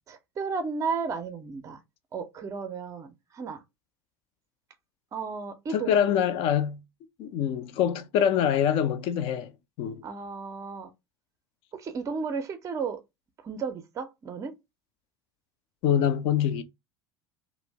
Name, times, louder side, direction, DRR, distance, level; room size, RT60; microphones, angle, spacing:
voice 1, 0.1-1.8 2.1-3.6 5.1-6.1 10.0-10.9 11.7-13.0 13.4-14.5, right 5 dB, 25° right, 0.5 m, -34 dB
voice 2, 5.7-6.8 7.2-9.5 9.8-10.0 15.8-16.6, left 9 dB, 45° left, 0.4 m, -25 dB
2.5 x 2.0 x 3.2 m
figure-of-eight pair, 70°, 13 cm